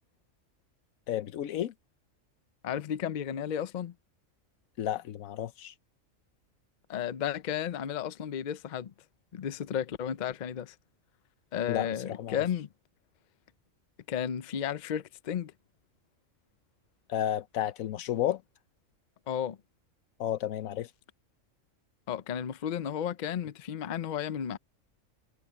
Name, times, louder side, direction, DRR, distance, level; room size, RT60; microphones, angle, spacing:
voice 1, 1.1-1.7 4.8-5.7 11.7-12.4 17.1-18.4 20.2-20.9, left 11 dB, 85° left, 1.1 m, -32 dB
voice 2, 2.6-3.9 6.9-8.9 9.3-10.7 11.5-12.7 14.1-15.5 19.3-19.6 22.1-24.6, left 9 dB, 50° left, 0.6 m, -33 dB
omnidirectional pair, 1.4 m